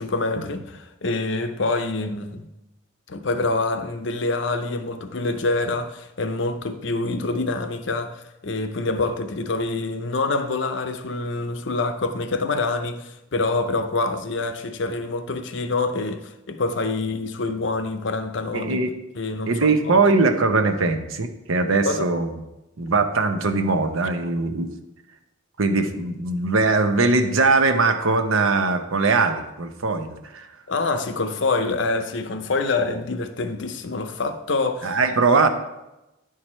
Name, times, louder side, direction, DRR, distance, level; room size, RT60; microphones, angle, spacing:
voice 1, 0.0-2.4 3.1-18.8 19.1-20.0 21.9-22.0 30.7-35.0 35.3-35.5, left 3 dB, 65° left, 0.7 m, -26 dB
voice 2, 18.5-18.9 19.5-22.3 22.8-24.7 25.6-30.5 34.8-35.5, right 3 dB, 85° right, 0.8 m, -21 dB
10.0 x 4.7 x 4.3 m
head